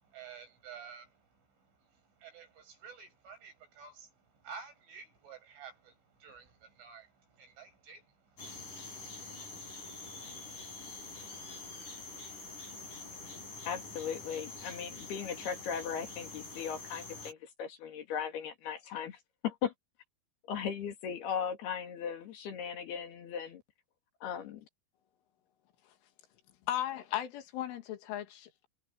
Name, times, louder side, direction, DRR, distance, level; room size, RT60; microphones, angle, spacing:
voice 1, 0.0-9.3, right 6 dB, 75° right, 9.6 m, -52 dB
sound 1, 8.4-17.3, left 3 dB, 40° left, 8.1 m, -46 dB
voice 2, 13.6-19.7 20.5-23.6 24.2-24.7, left 7 dB, 60° left, 4.0 m, -38 dB
voice 3, 26.7-28.7, left 12 dB, 80° left, 4.5 m, -36 dB
omnidirectional pair, 5.6 m